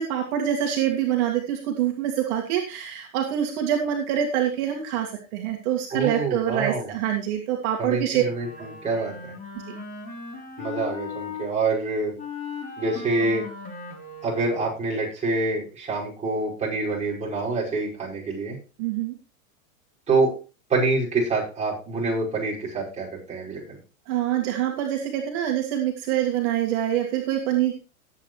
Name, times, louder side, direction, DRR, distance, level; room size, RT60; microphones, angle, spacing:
voice 1, 0.0-8.2 8.6-8.7 18.8-19.1 24.1-27.7, right 10 dB, 55° right, 0 dB, 2.2 m, -25 dB
voice 2, 5.9-6.9 7.8-9.3 10.6-12.1 12.8-13.5 14.2-18.6 20.1-20.3 20.7-23.8, right 3 dB, 15° right, -5 dB, 5.8 m, -26 dB
Wind instrument woodwind instrument, 8.3-11.5 12.2-14.9, left 4 dB, 20° left, 3.7 m, -37 dB
18.5 x 8.4 x 3.3 m, 0.33 s
supercardioid pair, 150°, 42 cm